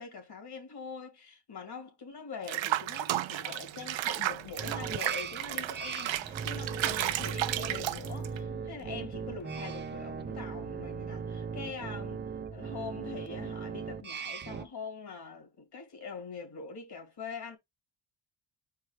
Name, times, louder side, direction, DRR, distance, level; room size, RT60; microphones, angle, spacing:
voice 1, 0.0-12.2 12.5-17.6, left 5 dB, 55° left, 2.5 m, -43 dB
Water / Bathtub (filling or washing), 2.5-8.4, right 13 dB, 75° right, 0.7 m, -33 dB
sound 1, 3.4-13.6, left 6 dB, 25° left, 0.7 m, -53 dB
sound 2, 4.6-14.7, right 6 dB, 25° right, 0.4 m, -39 dB
4.7 x 4.5 x 4.7 m
cardioid pair, 150°, 46 cm